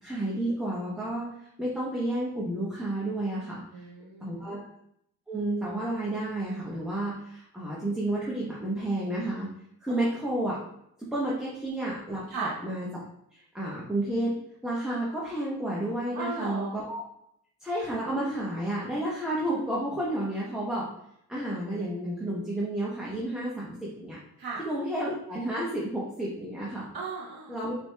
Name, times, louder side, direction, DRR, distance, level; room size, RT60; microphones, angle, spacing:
voice 1, 0.0-3.6 4.2-4.7 5.3-9.5 9.8-10.6 11.0-12.9 13.3-14.4 14.6-17.0 17.6-20.9 21.3-24.2 24.6-26.9 27.5-27.7, right 1 dB, ahead, -6 dB, 0.9 m, -31 dB
voice 2, 3.7-4.6 9.9-10.1 12.3-12.5 16.1-16.7 24.4-24.6 26.9-27.7, right 4 dB, 65° right, -4 dB, 1.0 m, -36 dB
5.9 x 2.8 x 2.3 m, 0.75 s
cardioid pair, 75°, 39 cm